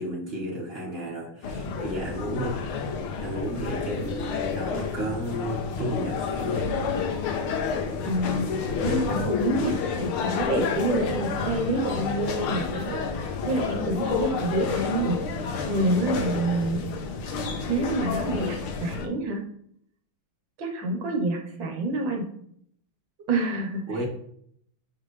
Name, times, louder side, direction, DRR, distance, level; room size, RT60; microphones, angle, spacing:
voice 1, 0.0-2.6 3.2-6.7 23.9-24.1, right 1 dB, 30° right, -4 dB, 1.5 m, -32 dB
sound 1, 1.4-19.1, left 5 dB, 85° left, 1.7 m, -30 dB
voice 2, 8.0-15.2 15.6-16.8 17.7-19.4 20.6-22.2 23.3-24.1, right 2 dB, 65° right, 3 dB, 1.6 m, -28 dB
7.2 x 4.8 x 3.2 m, 0.68 s
omnidirectional pair, 2.3 m